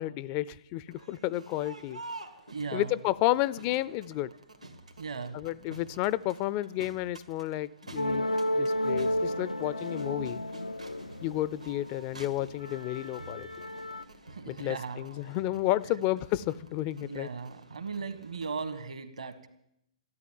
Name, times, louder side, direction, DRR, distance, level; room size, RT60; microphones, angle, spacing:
voice 1, 0.0-2.0 2.7-4.3 5.3-8.3 8.6-10.4 11.2-13.5 14.5-17.3, left 15 dB, 30° left, 20 dB, 0.4 m, -31 dB
Crowd, 0.9-18.6, right 2 dB, 85° right, 2.1 m, -50 dB
voice 2, 2.5-2.9 5.0-5.4 14.3-15.1 17.0-19.5, right 5 dB, 70° right, 10 dB, 1.8 m, -37 dB
sound 1, 8.0-12.0 12.5-14.0, left 1 dB, 85° left, 0.5 m, -32 dB
13.5 x 9.5 x 9.2 m, 0.79 s
figure-of-eight pair, 120°, 4 cm